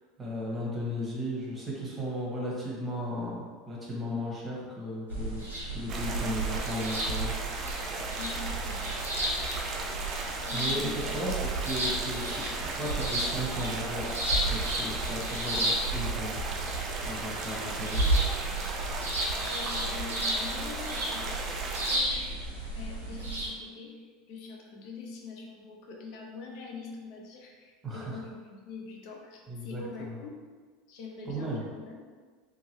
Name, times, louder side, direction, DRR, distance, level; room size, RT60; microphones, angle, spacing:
voice 1, 0.2-5.5 5.7-7.3 10.5-12.4 12.8-14.1 14.5-18.0 27.8-28.2 29.5-30.2 31.2-31.7, equal, 20° right, -5 dB, 1.0 m, -35 dB
sound 1, 5.1-23.5, right 1 dB, 90° right, 0.6 m, -32 dB
sound 2, 5.9-22.0, right 3 dB, 40° right, 0.4 m, -37 dB
voice 2, 8.1-9.0 10.3-11.2 12.2-12.5 12.8-12.9 15.2-15.3 19.4-22.4 22.7-30.4 30.9-32.0, left 4 dB, 60° left, 0 dB, 0.4 m, -44 dB
2.9 x 2.2 x 2.9 m, 1.5 s
figure-of-eight pair, 75°, 0 cm